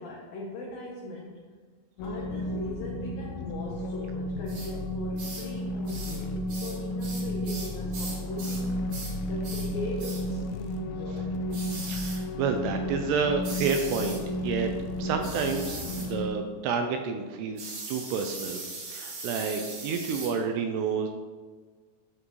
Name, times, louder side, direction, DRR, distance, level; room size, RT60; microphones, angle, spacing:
voice 1, 0.0-1.5 2.0-8.8 9.3-11.3, left 1 dB, 70° left, -2 dB, 2.3 m, -39 dB
sound 1, 2.0-16.3, left 1 dB, 90° left, 3.1 m, -33 dB
sound 2, 4.5-4.7 5.2-5.5 5.9-6.2 6.5-8.6 8.9-9.2 9.4-9.7 10.0-10.2 11.5-12.2 13.4-14.2 15.2-16.1 17.6-20.3, right 3 dB, 50° right, 3.0 m, -39 dB
voice 2, 11.9-14.7 15.0-18.6 18.9-21.1, right 5 dB, 80° right, 5 dB, 2.5 m, -29 dB
9.7 x 7.4 x 3.1 m, 1.5 s
omnidirectional pair, 5.1 m